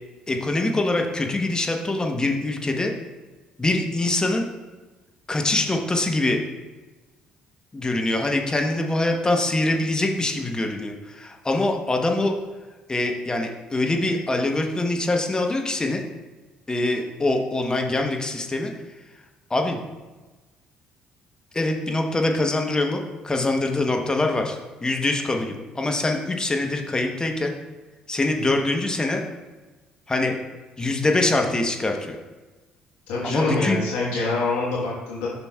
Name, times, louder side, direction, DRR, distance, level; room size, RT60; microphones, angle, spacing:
voice 1, 0.3-2.9 3.6-4.5 5.3-6.4 7.7-12.3 12.9-16.0 16.7-18.7 19.5-19.8 21.5-27.5 28.1-29.2 30.1-30.4 30.8-32.2 33.2-33.8, left 2 dB, 20° left, 3 dB, 1.0 m, -24 dB
voice 2, 33.1-35.3, left 2 dB, 80° left, -5 dB, 1.3 m, -25 dB
9.1 x 5.9 x 2.4 m, 1.2 s
hypercardioid pair, 55°, 3 cm